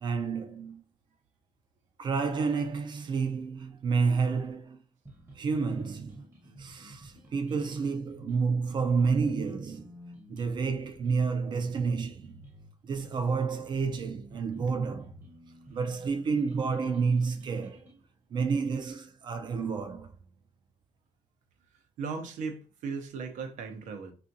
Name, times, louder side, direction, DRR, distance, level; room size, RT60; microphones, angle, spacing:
voice 1, 0.0-0.8 2.0-4.8 5.4-6.3 6.6-9.9 10.3-12.4 12.8-15.2 15.7-17.9 18.3-20.1, right 5 dB, 40° right, 0.3 m, -30 dB
sound 1, 5.1-18.0, right 2 dB, 15° right, 0.7 m, -49 dB
voice 2, 22.0-24.1, right 5 dB, 85° right, 0.7 m, -37 dB
3.4 x 2.5 x 2.6 m
cardioid pair, 165°, 12 cm